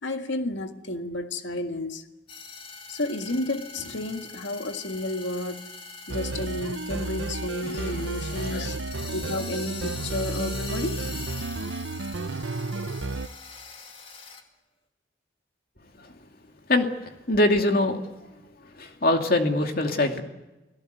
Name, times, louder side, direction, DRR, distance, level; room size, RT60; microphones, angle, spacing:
voice 1, 0.0-2.0 2.9-5.7 6.1-8.8 9.1-11.0, left 2 dB, 70° left, 1.8 m, -31 dB
sound 1, 2.3-14.4, left 4 dB, 30° left, 2.4 m, -42 dB
sound 2, 6.1-13.3, right 3 dB, 75° right, 0.8 m, -32 dB
voice 2, 17.3-18.0 18.8-20.2, left 2 dB, 50° left, 2.5 m, -22 dB
29.5 x 18.0 x 8.1 m
head